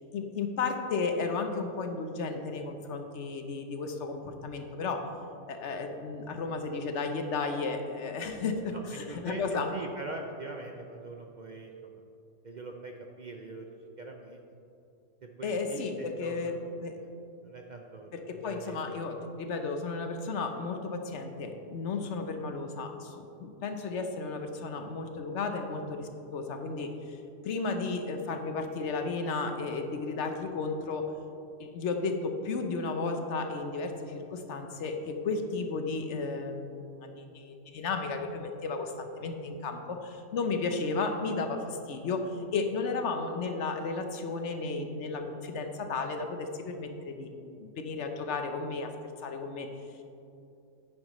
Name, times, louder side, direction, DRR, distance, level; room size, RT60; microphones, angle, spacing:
voice 1, 0.1-5.1 5.5-9.7 15.4-17.0 18.1-27.2 27.4-31.1 31.6-47.3 47.6-49.0 49.2-49.7, left 4 dB, 65° left, 5 dB, 1.0 m, -33 dB
voice 2, 8.7-12.0 12.4-13.7 14.0-14.4 15.2-16.5 17.0-17.1 17.4-19.0, right 3 dB, 50° right, 2 dB, 0.5 m, -42 dB
9.9 x 9.2 x 3.1 m, 2.7 s
omnidirectional pair, 1.3 m